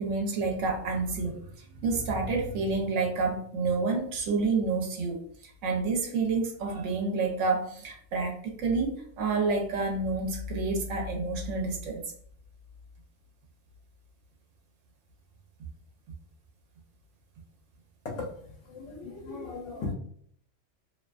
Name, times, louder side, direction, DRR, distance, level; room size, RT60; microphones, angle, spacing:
voice 1, 0.0-1.4 1.8-5.2 5.6-12.0, right 3 dB, 90° right, 0 dB, 0.9 m, -29 dB
voice 2, 18.7-19.9, left 3 dB, 90° left, -1 dB, 1.0 m, -37 dB
2.5 x 2.2 x 2.3 m, 0.63 s
omnidirectional pair, 1.3 m